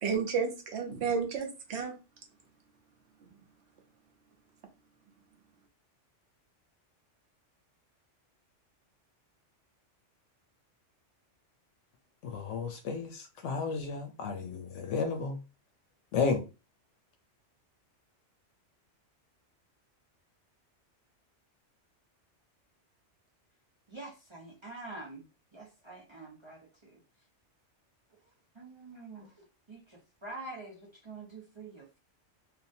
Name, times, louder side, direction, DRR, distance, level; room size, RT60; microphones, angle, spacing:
voice 1, 0.0-1.9 3.2-3.3, right 5 dB, 65° right, 1.0 m, -32 dB
voice 2, 12.2-15.4 16.1-16.4, left 5 dB, 80° left, 1.0 m, -32 dB
voice 3, 23.9-27.0 28.2-32.0, right 2 dB, 30° right, 0.7 m, -47 dB
3.5 x 2.4 x 2.6 m
omnidirectional pair, 1.2 m